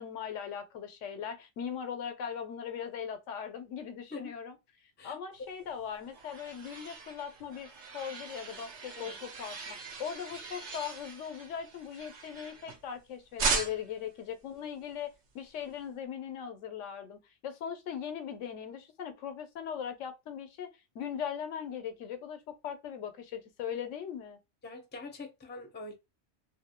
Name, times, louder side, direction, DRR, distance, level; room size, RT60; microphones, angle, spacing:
voice 1, 0.0-4.6 5.0-24.4, left 8 dB, 85° left, 1.0 m, -39 dB
voice 2, 5.0-5.5 9.0-9.2 24.6-25.9, left 3 dB, 15° left, 0.5 m, -44 dB
sound 1, 5.7-13.0 13.4-14.0, right 4 dB, 70° right, 1.0 m, -38 dB
2.7 x 2.6 x 2.9 m
omnidirectional pair, 1.2 m